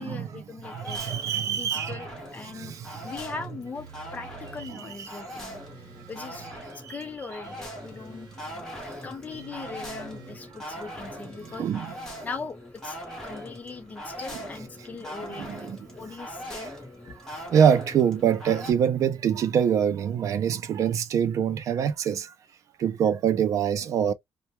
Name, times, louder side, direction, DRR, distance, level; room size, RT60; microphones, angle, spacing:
voice 1, 0.0-1.0 1.4-2.7 3.0-5.6 6.1-6.5 6.7-8.6 9.0-11.7 12.2-13.0 13.2-16.7, left 4 dB, 20° left, 0.5 m, -40 dB
sound 1, 0.6-18.7, equal, 5° left, 0.9 m, -41 dB
voice 2, 0.9-2.0 2.6-2.8 4.7-5.1 10.8-10.9 11.6-11.9 15.4-15.8 17.5-22.3 22.8-24.1, right 8 dB, 50° right, 0.4 m, -24 dB
sound 2, 3.7-4.7 5.5-6.7 7.4-8.6 9.3-10.4 11.2-12.3, right 7 dB, 80° right, 0.9 m, -49 dB
2.1 x 2.0 x 2.8 m
cardioid pair, 160°, 7 cm